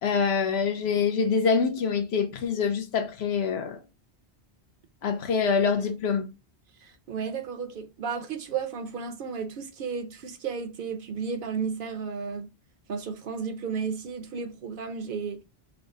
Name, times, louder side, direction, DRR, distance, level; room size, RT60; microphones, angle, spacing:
voice 1, 0.0-3.8 5.0-6.3, left 5 dB, 80° left, 0.9 m, -25 dB
voice 2, 6.8-12.5 12.9-15.4, right 6 dB, 60° right, 0.7 m, -33 dB
3.6 x 2.0 x 3.6 m
omnidirectional pair, 1.1 m